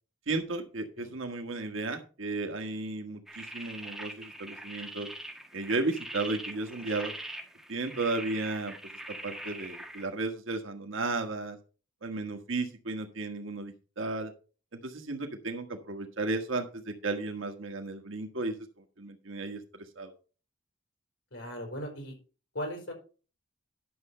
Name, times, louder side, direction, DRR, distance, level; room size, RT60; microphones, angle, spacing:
voice 1, 0.3-5.1 5.5-7.1 7.7-8.7 9.1-11.6 12.0-14.3 14.8-18.5 19.0-19.6 20.0-20.1, right 3 dB, 85° right, 5 dB, 1.4 m, -34 dB
sound 1, 3.3-10.1, right 1 dB, ahead, 1.5 m, -43 dB
voice 2, 21.3-22.2 22.5-22.9, equal, 80° left, 2 dB, 4.7 m, -38 dB
11.0 x 6.6 x 4.3 m, 0.35 s
head